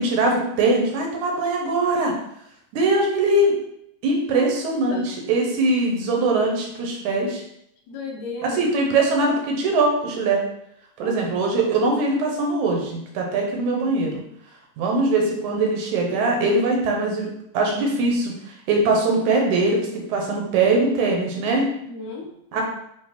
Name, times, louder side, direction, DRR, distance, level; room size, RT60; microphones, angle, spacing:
voice 1, 0.0-2.1 2.7-3.6 4.0-7.4 8.4-10.4 11.0-14.2 14.8-17.3 17.5-18.3 18.7-21.7 22.5-22.6, right 2 dB, 70° right, 0 dB, 2.3 m, -21 dB
voice 2, 4.4-5.1 7.9-8.6 11.0-11.1 21.8-22.3, left 3 dB, 70° left, 0 dB, 2.3 m, -34 dB
7.8 x 3.1 x 4.0 m, 0.77 s
omnidirectional pair, 3.9 m